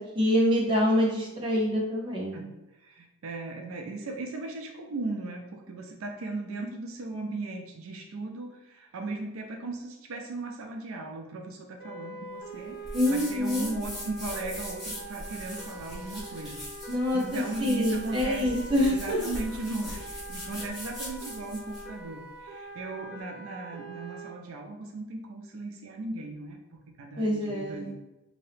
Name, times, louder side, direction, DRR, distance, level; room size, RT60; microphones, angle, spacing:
voice 1, 0.1-2.4 12.9-13.7 16.9-19.3 27.2-27.9, left 1 dB, 25° right, -4 dB, 0.8 m, -26 dB
voice 2, 2.3-16.9 17.1-27.9, right 2 dB, 80° right, 3 dB, 0.4 m, -37 dB
sound 1, 11.8-24.3, right 2 dB, 55° left, 1.0 m, -44 dB
sound 2, 12.8-21.9, equal, ahead, 1.2 m, -40 dB
2.8 x 2.7 x 3.2 m, 1.0 s
head